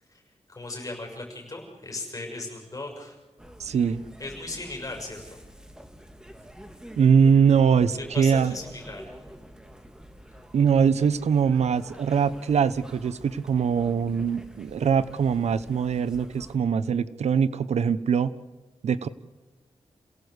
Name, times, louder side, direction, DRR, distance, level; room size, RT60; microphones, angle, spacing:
voice 1, 0.5-3.2 4.2-5.4 8.0-9.0, left 2 dB, 30° left, 1 dB, 6.4 m, -37 dB
sound 1, 3.4-16.6, equal, 5° right, 1.9 m, -47 dB
voice 2, 3.6-4.0 7.0-8.5 10.5-18.3 18.8-19.1, right 6 dB, 90° right, 16 dB, 0.8 m, -22 dB
28.0 x 17.5 x 8.1 m, 1.2 s
wide cardioid pair, 120°, 11 cm